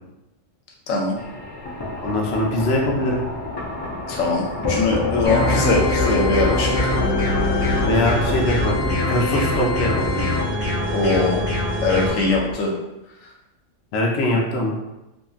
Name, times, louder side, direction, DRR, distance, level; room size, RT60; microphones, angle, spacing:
voice 1, 0.9-1.2 4.1-6.7 10.9-11.4 11.8-12.7, left 3 dB, 85° left, -1 dB, 1.0 m, -21 dB
sound 1, 1.2-12.5, left 3 dB, 40° left, 0.3 m, -27 dB
voice 2, 2.0-3.2 7.8-10.3 13.9-14.8, left 1 dB, 65° left, -1 dB, 0.7 m, -22 dB
sound 2, 5.2-12.1, left 1 dB, 20° left, 1.0 m, -24 dB
2.7 x 2.5 x 2.3 m, 0.95 s
omnidirectional pair, 1.3 m